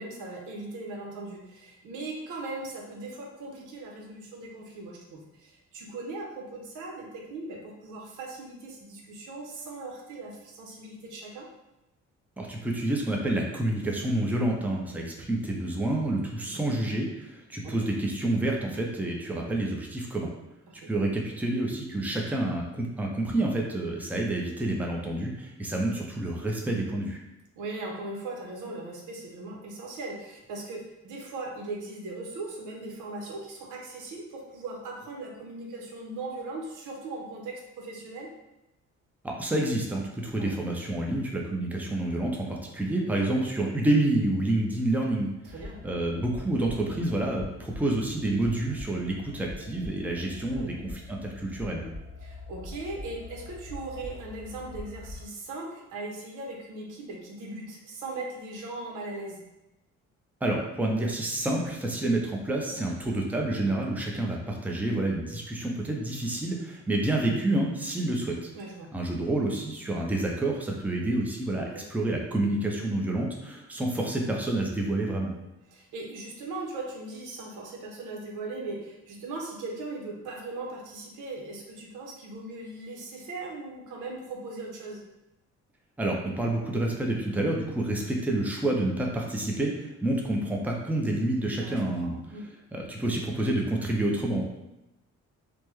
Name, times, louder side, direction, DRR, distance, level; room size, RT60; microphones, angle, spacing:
voice 1, 0.0-11.5 16.5-16.8 17.6-17.7 20.7-20.9 27.6-38.3 40.4-40.5 45.4-45.8 50.5-50.7 52.2-59.4 62.7-63.0 68.5-68.9 71.6-71.8 75.7-85.0 91.6-92.0 92.3-92.4, right 2 dB, 90° right, 0 dB, 0.8 m, -39 dB
voice 2, 12.4-20.3 20.9-27.2 39.2-45.3 45.8-51.9 60.4-68.5 68.9-75.3 86.0-92.2 92.7-94.4, right 1 dB, 5° right, -1 dB, 0.6 m, -28 dB
sound 1, 45.4-55.3, left 2 dB, 55° right, 1.1 m, -43 dB
3.3 x 2.1 x 3.1 m, 0.95 s
cardioid pair, 90°, 30 cm